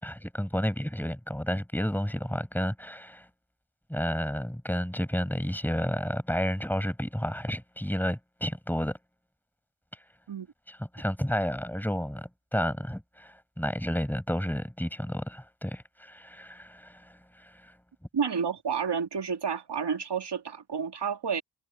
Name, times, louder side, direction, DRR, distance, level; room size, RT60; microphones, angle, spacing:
voice 1, 0.0-3.3 3.9-9.0 10.7-17.7, equal, 5° left, 6.2 m, -31 dB
voice 2, 18.1-21.4, right 6 dB, 75° right, 2.1 m, -30 dB
wide cardioid pair, 60°, 42 cm